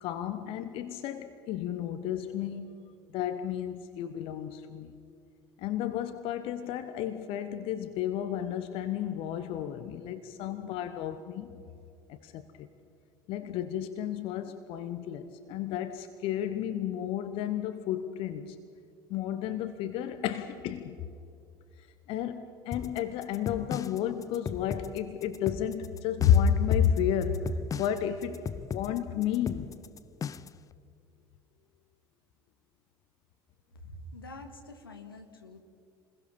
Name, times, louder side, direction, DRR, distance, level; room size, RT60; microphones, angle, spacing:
voice 1, 0.0-2.7 3.1-4.9 5.6-11.6 12.1-12.5 13.3-18.6 19.1-21.0 22.1-27.5 27.8-29.7, left 9 dB, 50° left, 10 dB, 1.1 m, -31 dB
sound 1, 22.7-30.6, left 7 dB, 30° left, 0.7 m, -37 dB
voice 2, 33.7-35.6, left 1 dB, 80° left, 4 dB, 2.0 m, -46 dB
28.5 x 21.5 x 5.3 m, 2.5 s
figure-of-eight pair, 60°, 12 cm